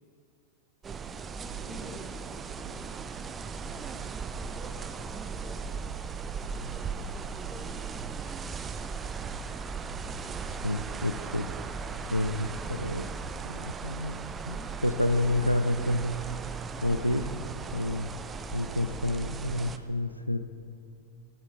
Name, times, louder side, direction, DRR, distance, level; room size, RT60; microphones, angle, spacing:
sound 1, 0.8-19.8, right 5 dB, 20° right, 0.5 m, -37 dB
voice 1, 1.4-2.1 2.4-2.9 4.5-5.8 6.3-7.6, equal, 5° right, -3 dB, 3.3 m, -50 dB
voice 2, 10.6-11.5 12.1-13.1 13.4-14.6 14.8-16.3 16.8-17.3 17.7-18.1 18.5-20.4, left 1 dB, 90° left, 9 dB, 0.4 m, -29 dB
17.0 x 9.8 x 3.6 m, 2.4 s
figure-of-eight pair, 90°, 0 cm